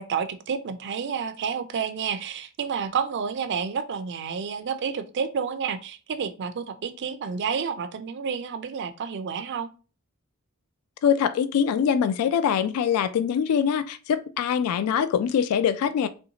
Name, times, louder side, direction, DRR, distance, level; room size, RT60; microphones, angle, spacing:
voice 1, 0.0-9.7, right 6 dB, 55° right, 10 dB, 0.4 m, -30 dB
voice 2, 11.0-16.1, left 8 dB, 85° left, 14 dB, 0.3 m, -23 dB
3.1 x 2.6 x 2.8 m, 0.35 s
head